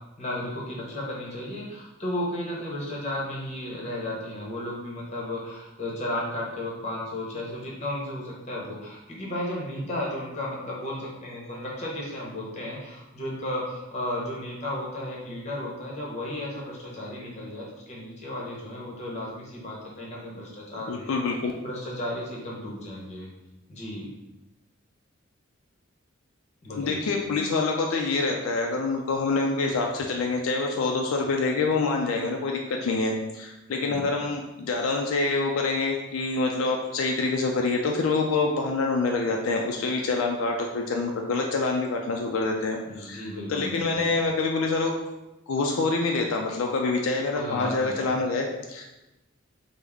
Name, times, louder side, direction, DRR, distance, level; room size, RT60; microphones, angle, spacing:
voice 1, 0.2-21.2 21.6-23.3 23.7-24.1 26.6-27.0 33.7-34.1 42.9-44.1 47.3-48.1, left 1 dB, 30° left, -4 dB, 0.8 m, -34 dB
voice 2, 20.9-21.5 26.8-44.9 45.5-48.8, left 3 dB, 75° left, 1 dB, 0.3 m, -26 dB
3.5 x 2.0 x 3.4 m, 1.0 s
head